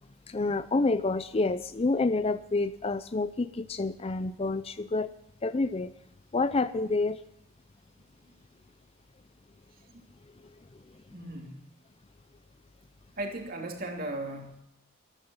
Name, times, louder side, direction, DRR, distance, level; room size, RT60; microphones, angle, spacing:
voice 1, 0.3-5.1 5.4-5.9 6.3-7.2, left 3 dB, 25° left, 13 dB, 0.4 m, -28 dB
voice 2, 11.1-11.6 13.2-14.6, right 1 dB, 40° right, 2 dB, 2.8 m, -37 dB
13.5 x 13.5 x 5.5 m, 0.79 s
head